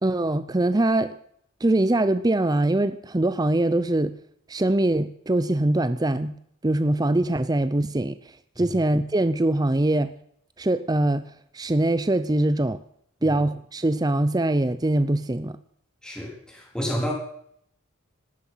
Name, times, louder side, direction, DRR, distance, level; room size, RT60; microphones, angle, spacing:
voice 1, 0.0-1.2 1.6-4.1 4.5-6.4 6.6-10.1 10.6-12.8 13.2-15.6, right 1 dB, 20° right, 0.6 m, -23 dB
voice 2, 16.0-17.1, equal, 5° left, 3.9 m, -29 dB
18.0 x 12.5 x 5.7 m
head